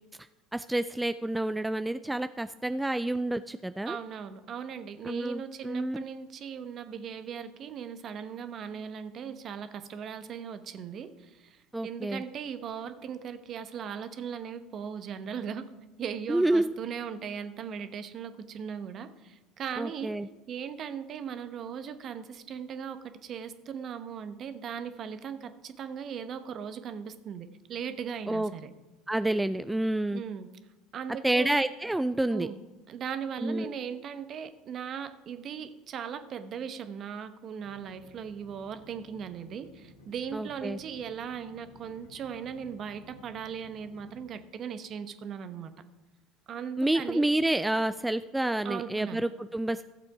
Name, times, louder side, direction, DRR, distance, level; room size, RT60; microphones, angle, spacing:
voice 1, 0.5-4.0 5.0-6.1 11.7-12.2 16.3-16.7 19.8-20.3 28.3-28.5 29.1-30.2 31.2-32.5 33.4-33.7 40.3-40.8 46.8-49.8, right 1 dB, 10° right, 12 dB, 0.3 m, -29 dB
voice 2, 3.8-15.7 16.0-20.1 20.5-28.7 30.1-30.5 30.9-31.5 32.3-32.6 32.9-45.7 46.5-47.2 48.6-49.2, right 7 dB, 45° right, 10 dB, 1.0 m, -38 dB
sound 1, 37.6-44.3, left 1 dB, 85° left, 1.5 m, -55 dB
14.5 x 7.5 x 4.8 m, 1.1 s
hypercardioid pair, 75°, 0 cm